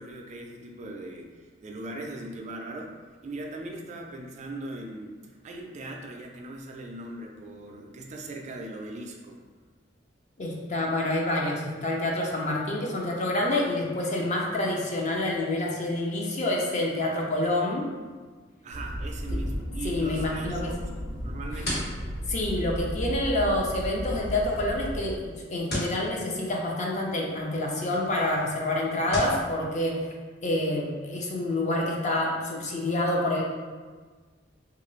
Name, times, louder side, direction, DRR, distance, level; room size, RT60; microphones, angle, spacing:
voice 1, 0.0-3.0 3.2-5.2 5.4-9.4 18.6-21.9 29.0-29.1, right 1 dB, 40° right, 1 dB, 0.3 m, -39 dB
voice 2, 10.4-17.9 19.8-20.7 22.3-30.0 30.4-33.4, left 1 dB, 40° left, -1 dB, 0.5 m, -27 dB
sound 1, 18.7-25.1, equal, 90° left, 0.7 m, -34 dB
sound 2, 21.1-29.4, equal, 60° left, 1.2 m, -40 dB
3.0 x 2.4 x 3.0 m, 1.5 s
head